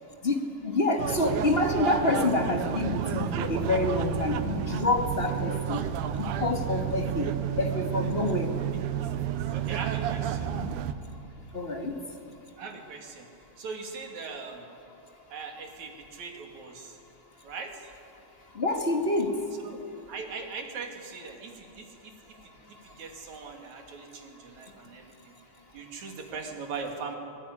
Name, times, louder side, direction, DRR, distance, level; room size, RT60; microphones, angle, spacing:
voice 1, 0.2-5.8 6.1-7.3 7.6-8.5 10.5-10.7 11.5-12.0 18.6-19.4, left 2 dB, 30° left, 4 dB, 1.1 m, -27 dB
sound 1, 1.0-10.9, right 10 dB, 80° right, 2.4 m, -31 dB
voice 2, 9.5-10.6 12.6-13.3 13.6-14.7 15.3-17.0 17.4-17.9 19.6-19.8 20.1-25.4 25.7-27.2, right 4 dB, 60° right, 3 dB, 3.8 m, -40 dB
25.0 x 20.0 x 10.0 m, 2.5 s
omnidirectional pair, 3.7 m